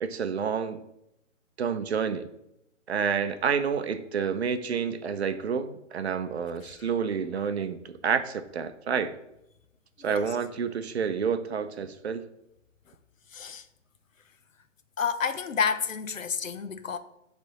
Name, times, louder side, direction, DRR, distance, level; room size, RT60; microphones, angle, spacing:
voice 1, 0.0-0.8 1.6-2.3 2.9-9.1 10.0-12.3, right 6 dB, 60° right, 0.6 m, -29 dB
voice 2, 13.3-13.6 15.0-17.0, left 6 dB, 90° left, 0.7 m, -30 dB
10.0 x 3.4 x 2.9 m
figure-of-eight pair, 145°, 38 cm